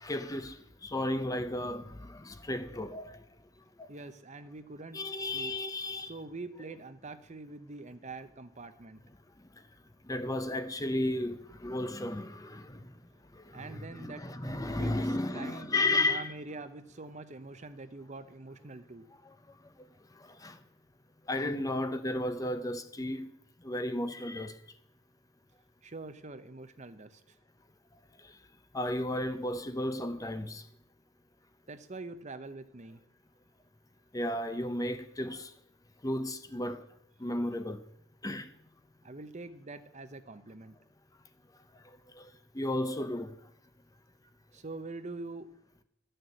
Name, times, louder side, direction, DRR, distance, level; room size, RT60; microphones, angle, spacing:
voice 1, 0.0-0.5 0.9-1.8 2.2-3.0 4.9-6.1 10.1-12.6 13.5-16.3 20.4-20.5 21.3-23.3 23.6-24.5 28.7-30.6 34.1-35.5 36.0-36.8 37.2-37.8 38.2-38.5 42.6-43.3, left 1 dB, 15° left, 0.7 m, -33 dB
voice 2, 3.9-5.5 6.1-9.0 13.5-14.2 14.8-15.0 15.3-19.1 25.8-27.2 31.7-33.0 39.0-40.7 44.5-45.5, right 3 dB, 35° right, 0.8 m, -44 dB
12.5 x 6.7 x 9.1 m
head